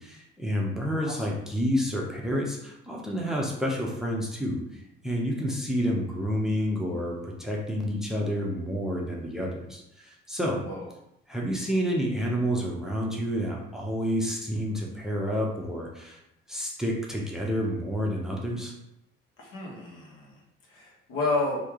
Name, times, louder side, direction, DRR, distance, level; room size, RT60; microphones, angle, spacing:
voice 1, 0.0-10.6 11.3-16.2 16.5-18.7, equal, ahead, -2 dB, 0.6 m, -29 dB
voice 2, 19.4-20.4 20.7-21.6, left 3 dB, 85° left, -3 dB, 1.2 m, -31 dB
3.1 x 2.7 x 3.6 m, 0.82 s
cardioid pair, 130°, 21 cm